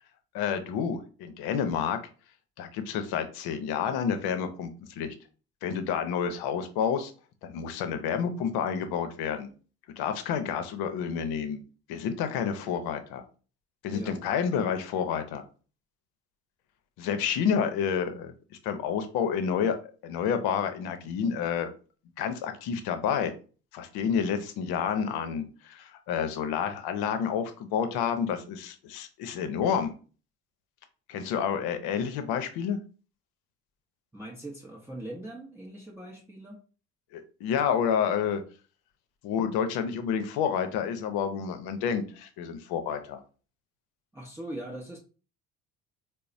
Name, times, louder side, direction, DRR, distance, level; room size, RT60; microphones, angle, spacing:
voice 1, 0.3-2.0 2.6-5.1 5.6-7.1 7.4-9.5 10.0-11.6 11.9-13.2 13.8-15.4 17.0-18.3 18.6-19.8 20.0-21.7 22.2-23.3 23.7-29.9 31.1-32.8 37.1-38.4 39.2-43.2, left 7 dB, 60° left, 8 dB, 0.7 m, -29 dB
voice 2, 34.1-36.6 44.1-45.0, right 1 dB, 5° right, -2 dB, 0.7 m, -41 dB
3.9 x 2.1 x 2.4 m, 0.36 s
hypercardioid pair, 50°, 42 cm